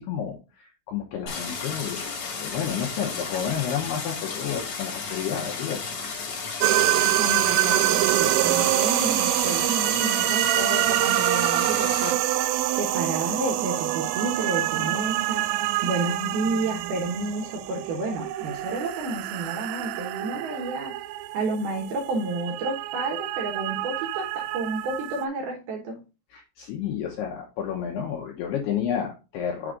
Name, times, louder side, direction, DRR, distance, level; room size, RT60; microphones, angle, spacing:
voice 1, 0.0-5.9 26.3-29.7, left 8 dB, 75° left, 1 dB, 2.4 m, -31 dB
Stream, 1.3-12.1, left 5 dB, 55° left, 2.2 m, -34 dB
sound 1, 6.6-25.2, right 15 dB, 90° right, 3.1 m, -26 dB
voice 2, 7.2-12.5 12.8-20.9 21.3-26.0, right 2 dB, 70° right, 1 dB, 2.5 m, -31 dB
6.9 x 4.9 x 3.7 m, 0.30 s
omnidirectional pair, 5.7 m